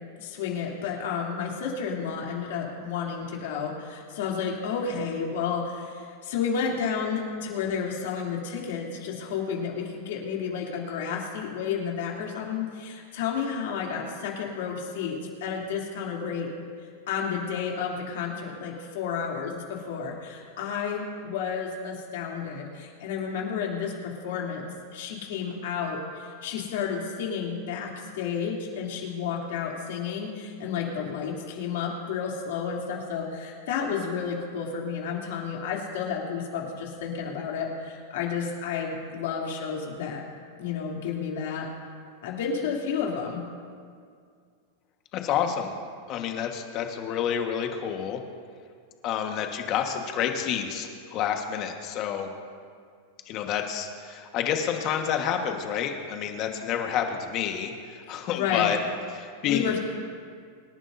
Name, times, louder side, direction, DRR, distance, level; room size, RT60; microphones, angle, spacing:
voice 1, 0.2-16.5 17.1-24.6 24.9-40.2 40.6-41.7 42.2-43.4 58.1-58.7 59.4-59.8, left 6 dB, 70° left, -2 dB, 3.0 m, -31 dB
voice 2, 45.1-45.8 46.1-48.2 49.0-52.3 53.2-58.8 59.1-59.8, left 8 dB, 40° left, 4 dB, 1.5 m, -29 dB
25.5 x 11.0 x 2.7 m, 2.1 s
supercardioid pair, 140°, 0 cm